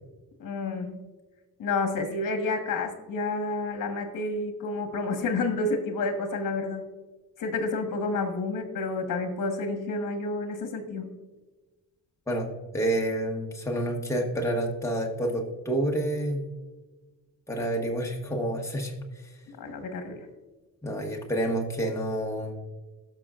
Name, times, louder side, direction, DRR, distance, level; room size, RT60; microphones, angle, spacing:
voice 1, 0.4-1.0 1.6-6.8 7.4-11.2 19.6-20.3, left 3 dB, 60° left, 6 dB, 1.4 m, -30 dB
voice 2, 12.7-16.4 17.5-18.9 20.8-22.6, right 1 dB, 10° left, -1 dB, 1.1 m, -28 dB
16.5 x 6.2 x 2.4 m, 1.2 s
cardioid pair, 175°, 37 cm